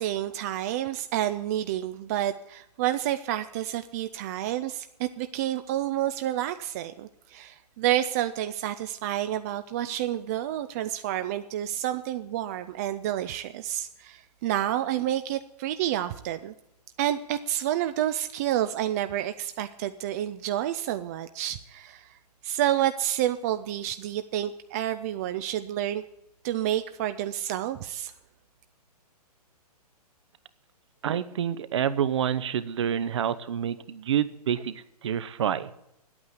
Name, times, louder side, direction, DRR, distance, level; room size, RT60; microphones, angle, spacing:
voice 1, 0.0-16.5 17.0-22.1 22.4-26.0 26.4-28.1, right 12 dB, 25° right, 10 dB, 0.4 m, -29 dB
voice 2, 31.0-35.7, right 9 dB, 45° right, 14 dB, 0.8 m, -28 dB
10.5 x 8.7 x 8.2 m, 0.82 s
figure-of-eight pair, 120°, 20 cm